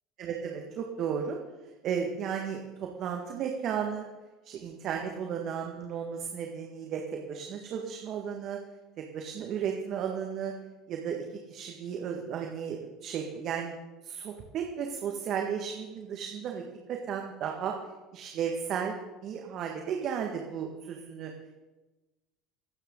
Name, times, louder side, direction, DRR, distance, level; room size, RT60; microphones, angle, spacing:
voice 1, 0.2-1.4 1.8-4.1 4.4-7.0 7.3-8.6 9.1-10.5 10.9-13.7 14.0-16.6 16.9-17.7 18.1-21.3, right 7 dB, 50° right, 2 dB, 1.7 m, -34 dB
25.0 x 9.1 x 3.9 m, 1.2 s
hypercardioid pair, 75°, 0 cm